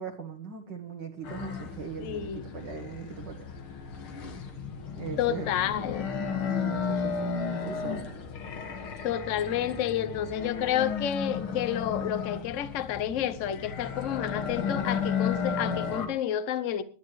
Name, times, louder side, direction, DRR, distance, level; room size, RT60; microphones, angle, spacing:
voice 1, 0.0-3.4 5.0-5.5 6.4-8.1, right 6 dB, 60° right, 1.8 m, -39 dB
sound 1, 1.2-16.1, left 6 dB, 80° left, 2.6 m, -34 dB
voice 2, 2.0-2.4 5.2-6.0 9.0-16.8, left 10 dB, 50° left, 0.9 m, -30 dB
21.0 x 11.5 x 3.2 m
omnidirectional pair, 2.3 m